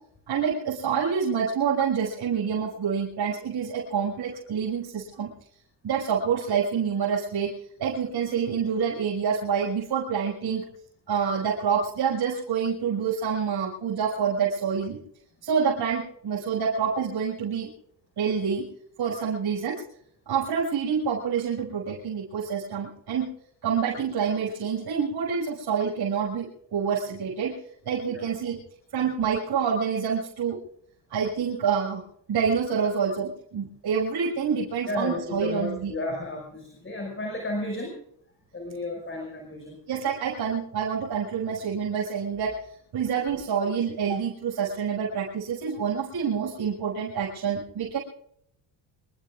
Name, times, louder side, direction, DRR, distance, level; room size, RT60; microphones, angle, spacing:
voice 1, 0.3-5.3 5.8-7.5 7.8-10.6 11.1-15.0 15.4-17.7 18.2-18.7 19.0-19.8 20.3-23.3 23.6-27.6 27.8-28.6 28.9-30.6 31.1-32.0 32.3-35.9 39.9-48.0, right 6 dB, 55° right, -4 dB, 6.5 m, -27 dB
voice 2, 34.9-38.0 38.5-39.8, left 1 dB, 25° left, 1 dB, 6.1 m, -32 dB
26.0 x 21.5 x 2.5 m, 0.70 s
cardioid pair, 100°, 47 cm